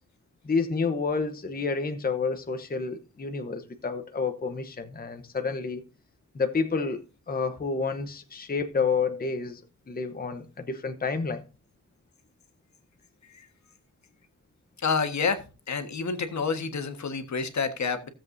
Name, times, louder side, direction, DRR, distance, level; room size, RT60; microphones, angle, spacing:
voice 1, 0.4-5.8 6.3-7.0 7.3-9.6 9.9-11.4, left 4 dB, 30° left, 0.9 m, -29 dB
voice 2, 14.8-18.1, left 5 dB, 70° left, 1.5 m, -29 dB
16.0 x 7.7 x 2.7 m
wide cardioid pair, 160°, 30 cm